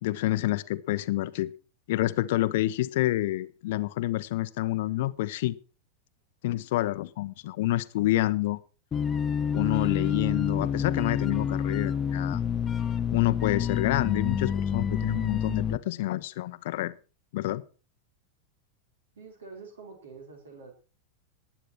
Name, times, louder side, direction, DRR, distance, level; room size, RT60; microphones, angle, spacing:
voice 1, 0.0-1.5 1.9-5.6 6.4-8.6 9.5-12.4 13.1-16.9 17.3-17.6, left 16 dB, 50° left, 0.8 m, -28 dB
sound 1, 8.9-15.8, left 7 dB, 25° left, 0.8 m, -28 dB
voice 2, 19.2-20.7, right 4 dB, 65° right, 4.6 m, -46 dB
19.5 x 9.0 x 4.5 m
figure-of-eight pair, 90°, 0 cm